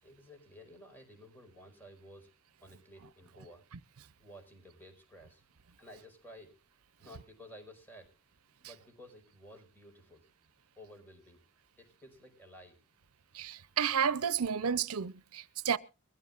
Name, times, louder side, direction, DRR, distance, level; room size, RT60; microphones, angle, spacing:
voice 1, 0.0-2.3 2.6-3.7 4.2-5.4 5.8-6.5 7.0-8.1 8.6-10.3 10.8-11.4 11.8-12.8, equal, 10° left, 4.9 m, -54 dB
voice 2, 13.3-15.8, right 7 dB, 80° right, 0.7 m, -31 dB
23.0 x 15.0 x 2.4 m
head